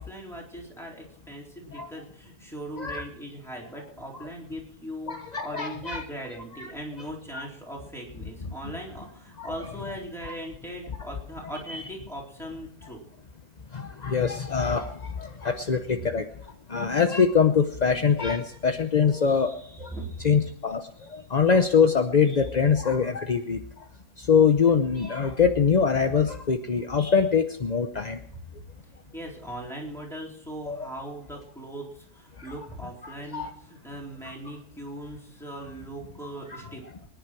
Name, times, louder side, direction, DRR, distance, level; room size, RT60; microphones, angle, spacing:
voice 1, 0.0-13.0 19.9-20.3 29.1-36.8, right 1 dB, ahead, -2 dB, 4.0 m, -39 dB
voice 2, 5.1-6.0 6.6-6.7 7.3-7.4 9.4-9.5 11.7-11.8 13.7-16.3 16.7-19.9 20.2-23.9 24.2-28.2 30.7-30.8 32.4-32.5 33.0-33.5, left 6 dB, 40° left, 7 dB, 0.6 m, -23 dB
24.0 x 10.5 x 4.6 m, 0.66 s
omnidirectional pair, 1.7 m